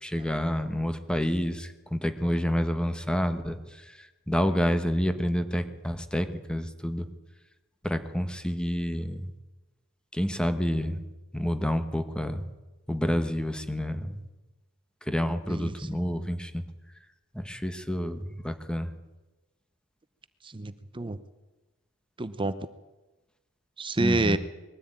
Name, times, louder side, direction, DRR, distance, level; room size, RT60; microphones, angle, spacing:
voice 1, 0.0-3.6 4.3-7.1 7.8-9.3 10.1-11.0 11.3-12.4 12.9-14.2 15.1-16.6 17.3-18.9 24.0-24.4, equal, 5° left, 9 dB, 1.4 m, -28 dB
voice 2, 15.5-15.9 20.4-21.2 22.2-22.5 23.8-24.4, right 2 dB, 25° right, 13 dB, 0.8 m, -28 dB
21.0 x 14.5 x 8.9 m, 1.1 s
head